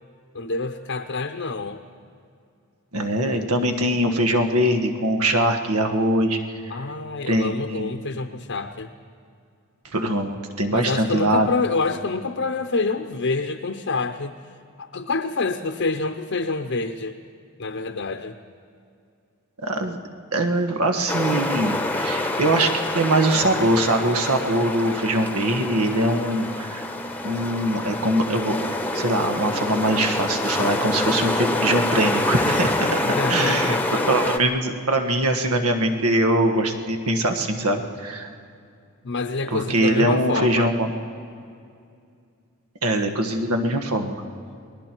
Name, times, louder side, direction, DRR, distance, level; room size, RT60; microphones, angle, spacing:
voice 1, 0.3-1.8 6.7-8.9 10.7-14.4 14.8-17.2 17.6-18.4 33.0-34.1 39.0-40.7, left 3 dB, 55° left, 6 dB, 0.7 m, -27 dB
voice 2, 2.9-6.4 7.3-7.9 9.9-11.5 19.6-20.0 20.3-26.9 27.2-28.6 28.9-33.7 34.0-38.3 39.5-40.9 42.8-44.2, right 1 dB, 80° right, 6 dB, 1.5 m, -22 dB
sound 1, 21.1-34.4, left 2 dB, 5° left, 0.9 m, -26 dB
29.0 x 21.0 x 4.6 m, 2.4 s
head